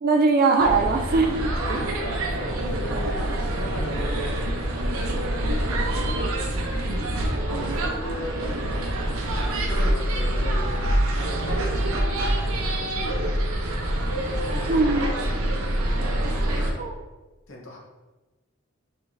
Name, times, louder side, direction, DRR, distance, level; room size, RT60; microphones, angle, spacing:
voice 1, 0.0-1.9 2.6-3.3 6.8-7.7 14.7-15.2 16.8-16.9, right 3 dB, 45° right, 3 dB, 0.4 m, -23 dB
sound 1, 0.6-16.7, right 1 dB, 90° right, 0.7 m, -26 dB
voice 2, 1.6-5.4 7.5-9.1 9.5-10.9 11.1-13.9 14.4-16.9 17.5-17.8, equal, 65° left, 0 dB, 0.9 m, -38 dB
5.7 x 3.3 x 2.6 m, 1.2 s
head